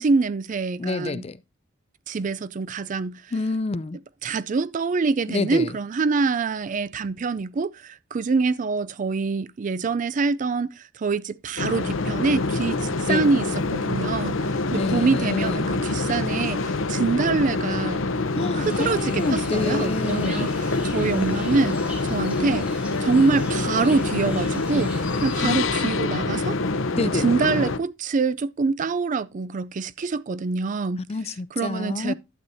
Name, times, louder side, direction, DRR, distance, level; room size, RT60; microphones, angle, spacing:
voice 1, 0.0-1.3 2.1-3.3 4.2-18.0 18.3-26.6 27.0-31.1 31.5-32.1, right 4 dB, 40° right, 0.4 m, -25 dB
voice 2, 0.8-1.4 3.3-4.0 5.3-5.7 13.0-13.3 14.7-15.7 18.4-20.5 25.4-25.6 27.0-27.3 31.1-32.1, left 3 dB, 30° left, 0.4 m, -28 dB
sound 1, 11.6-27.8, left 3 dB, 70° left, 0.8 m, -26 dB
sound 2, 18.6-25.7, equal, 5° right, 2.6 m, -40 dB
11.5 x 8.0 x 2.7 m
head